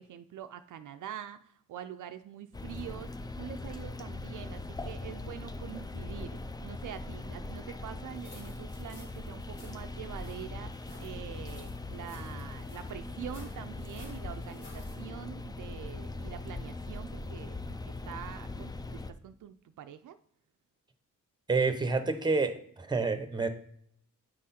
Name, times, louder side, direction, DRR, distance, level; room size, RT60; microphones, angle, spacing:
voice 1, 0.0-20.2, right 10 dB, 65° right, 9 dB, 0.5 m, -45 dB
sound 1, 2.5-19.1, left 2 dB, 15° left, 0.4 m, -40 dB
sound 2, 8.1-15.0, left 2 dB, 70° left, 3.1 m, -55 dB
voice 2, 21.5-23.5, right 4 dB, 15° right, 9 dB, 0.9 m, -28 dB
9.1 x 3.7 x 4.2 m, 0.65 s
cardioid pair, 100°, 32 cm